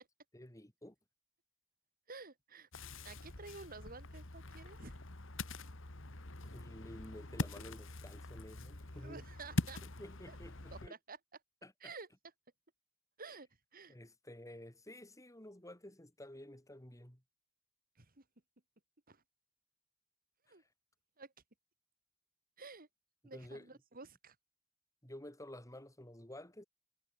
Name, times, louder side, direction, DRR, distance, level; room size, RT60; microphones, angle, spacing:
voice 1, 0.3-1.0 6.4-9.2 9.8-10.9 11.6-11.9 13.9-17.2 20.5-20.7 23.3-23.7 25.0-26.6, left 1 dB, 15° left, 5.9 m, -52 dB
voice 2, 2.1-2.7 3.0-4.9 8.9-9.8 10.3-10.4 10.7-11.2 11.8-12.1 13.2-13.9 18.0-18.2 19.1-19.2 20.5-20.6 21.2-21.3 22.6-22.9 23.2-24.4, right 4 dB, 45° right, 3.4 m, -51 dB
Ocean, 2.7-10.9, left 2 dB, 70° left, 2.3 m, -43 dB
head